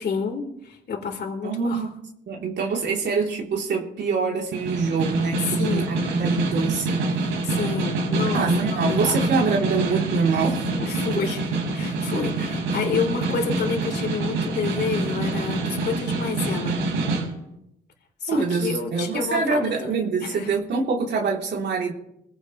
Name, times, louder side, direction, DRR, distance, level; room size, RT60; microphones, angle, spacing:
voice 1, 0.0-1.9 5.4-6.1 7.4-9.3 10.7-16.8 18.2-20.5, left 5 dB, 60° left, 2 dB, 4.1 m, -29 dB
voice 2, 1.4-1.9 2.3-7.1 8.3-10.6 18.3-21.9, right 4 dB, 60° right, -1 dB, 3.4 m, -25 dB
Snare drum, 4.5-17.3, right 2 dB, 90° right, 5.2 m, -26 dB
25.5 x 17.0 x 3.2 m, 0.82 s
cardioid pair, 90°, 20 cm